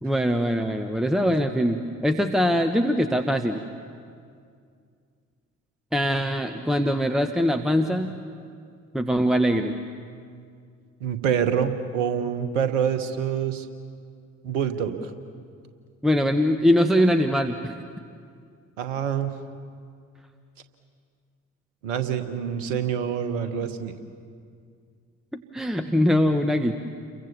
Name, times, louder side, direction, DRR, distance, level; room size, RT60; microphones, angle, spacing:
voice 1, 0.0-3.6 5.9-8.1 8.9-9.7 16.0-17.7 25.3-26.7, equal, ahead, 6 dB, 1.3 m, -22 dB
voice 2, 11.0-13.7 14.4-15.1 18.8-19.3 21.8-23.9, right 8 dB, 70° right, 10 dB, 1.5 m, -26 dB
29.5 x 23.0 x 7.1 m, 2.2 s
figure-of-eight pair, 45°, 39 cm